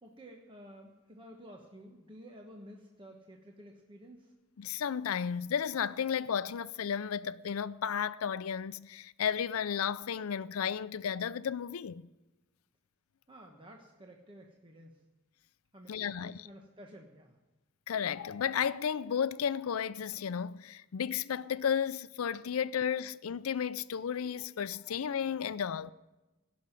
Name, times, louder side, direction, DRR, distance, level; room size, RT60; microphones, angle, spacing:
voice 1, 0.0-4.3 13.3-15.0 15.7-17.4, equal, 25° right, 1.2 m, -52 dB
voice 2, 4.6-12.0 15.9-16.4 17.9-25.9, left 7 dB, 80° left, 0.4 m, -33 dB
17.0 x 6.4 x 9.1 m
head